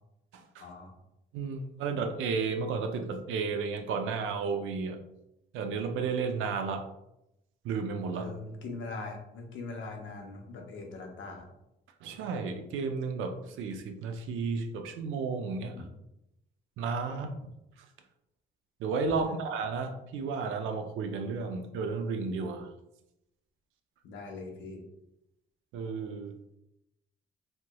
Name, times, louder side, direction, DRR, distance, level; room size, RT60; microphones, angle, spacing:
voice 1, 0.6-0.9 8.1-11.5 15.7-15.9 17.1-17.3 19.3-19.4 24.0-24.8, left 3 dB, 75° left, 1 dB, 0.7 m, -41 dB
voice 2, 1.3-5.0 5.5-6.9 7.6-8.3 12.0-15.8 16.8-17.3 18.8-22.7 25.7-26.4, right 5 dB, 85° right, 5 dB, 0.5 m, -33 dB
3.2 x 2.9 x 2.2 m, 0.86 s
cardioid pair, 90°, 20 cm